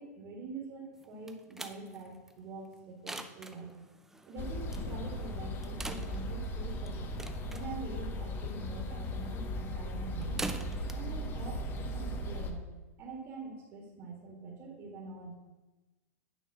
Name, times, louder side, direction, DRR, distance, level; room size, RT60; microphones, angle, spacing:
voice 1, 0.0-3.8 4.2-7.1 7.5-10.4 10.9-12.7 13.0-15.3, right 3 dB, 35° right, 0 dB, 1.8 m, -45 dB
sound 1, 1.0-12.4, right 2 dB, 5° right, 0.4 m, -46 dB
sound 2, 4.4-12.5, equal, 25° left, 0.8 m, -37 dB
9.3 x 3.6 x 6.8 m, 1.2 s
supercardioid pair, 145°, 8 cm